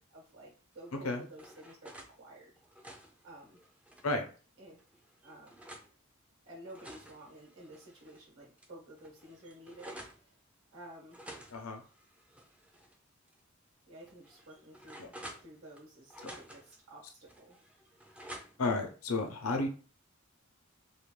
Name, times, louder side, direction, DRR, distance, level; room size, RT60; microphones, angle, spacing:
voice 1, 0.0-2.5 3.2-3.6 4.6-4.8 5.2-5.7 6.4-10.4 10.7-11.4 13.9-17.6, right 1 dB, 65° right, -2 dB, 1.1 m, -52 dB
sound 1, 0.8-2.1 2.6-4.2 4.8-5.9 6.5-8.2 8.6-8.7 9.0-10.2 11.1-12.9 13.3-13.4 14.0-15.8 16.1-16.8 17.3-18.8, right 1 dB, 5° right, 0.3 m, -51 dB
voice 2, 11.5-11.8 15.0-15.1 18.6-19.7, left 3 dB, 90° left, 3 dB, 0.7 m, -32 dB
2.7 x 2.2 x 3.1 m, 0.38 s
head